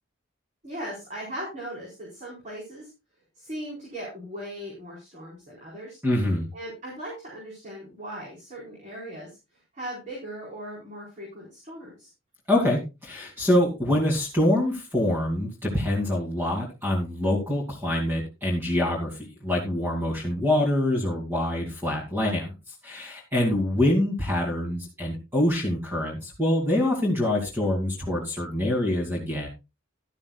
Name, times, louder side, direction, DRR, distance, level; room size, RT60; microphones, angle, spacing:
voice 1, 0.6-2.9 3.4-6.0 6.5-9.4 9.7-12.1, right 1 dB, 35° right, -4 dB, 4.4 m, -38 dB
voice 2, 6.0-6.5 12.5-22.5 22.8-29.5, left 1 dB, 10° right, -1 dB, 2.4 m, -25 dB
12.5 x 11.5 x 2.3 m, 0.26 s
head